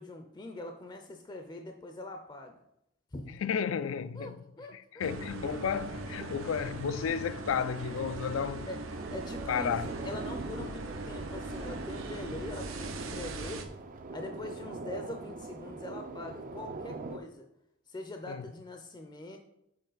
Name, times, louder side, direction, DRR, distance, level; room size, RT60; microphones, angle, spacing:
voice 1, 0.0-2.6 3.1-3.4 4.1-5.1 8.6-8.8 9.1-9.8 10.0-13.6 14.1-17.5 17.9-19.4, left 2 dB, 20° left, 0.5 m, -43 dB
voice 2, 3.4-4.4 4.7-8.7 9.5-9.9 10.6-10.7 18.3-18.5, left 7 dB, 80° left, 0.4 m, -33 dB
sound 1, 5.0-13.6, right 2 dB, 85° right, 0.7 m, -40 dB
sound 2, 8.9-17.2, right 3 dB, 45° right, 0.4 m, -42 dB
6.6 x 4.3 x 3.9 m
head